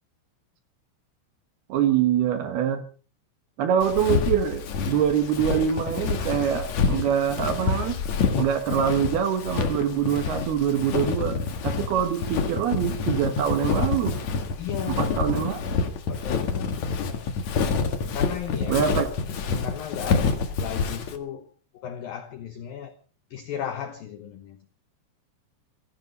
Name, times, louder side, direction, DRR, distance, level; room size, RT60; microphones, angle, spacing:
voice 1, 1.7-2.8 3.6-8.0 8.4-14.2 14.9-15.6 18.7-19.1, right 8 dB, 65° right, 8 dB, 2.7 m, -24 dB
Walk footsteps, 3.8-21.2, left 5 dB, 60° left, 1.8 m, -27 dB
voice 2, 14.6-15.2 16.1-17.3 18.1-18.9 19.6-21.5 21.7-22.9 23.3-24.6, left 9 dB, 85° left, 8 dB, 2.0 m, -35 dB
17.5 x 15.5 x 5.3 m, 0.40 s
omnidirectional pair, 5.9 m